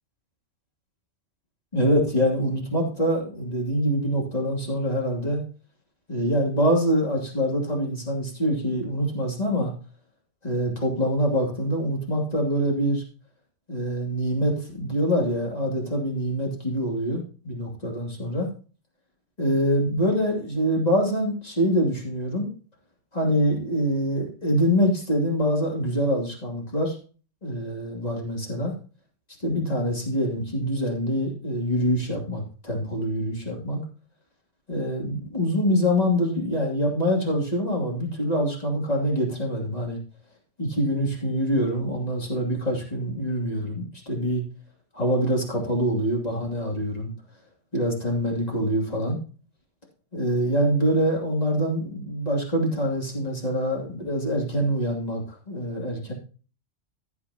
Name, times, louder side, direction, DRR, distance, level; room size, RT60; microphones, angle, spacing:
voice 1, 1.7-5.4 6.1-9.7 10.4-13.0 13.7-18.5 19.4-22.5 23.1-27.0 27.4-28.7 29.4-33.8 34.7-40.0 40.6-44.4 44.9-47.1 47.7-49.2 50.1-56.1, equal, 35° left, -1 dB, 2.9 m, -25 dB
15.0 x 7.9 x 2.9 m, 0.38 s
omnidirectional pair, 1.2 m